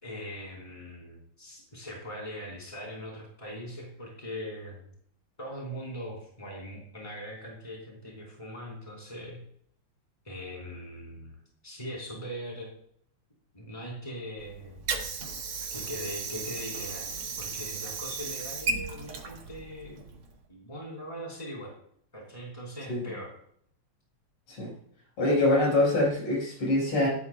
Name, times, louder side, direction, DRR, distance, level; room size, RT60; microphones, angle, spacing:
voice 1, 0.0-4.9 5.4-9.4 10.2-11.4 11.6-12.7 13.5-14.8 15.7-17.1 17.4-20.0 20.5-21.7 22.1-23.3, equal, 15° left, -2 dB, 3.9 m, -41 dB
Water / Sink (filling or washing), 14.4-20.4, right 4 dB, 70° right, 2.1 m, -35 dB
voice 2, 25.2-27.1, left 2 dB, 80° left, -3 dB, 5.9 m, -24 dB
16.5 x 10.0 x 2.2 m, 0.64 s
omnidirectional pair, 2.4 m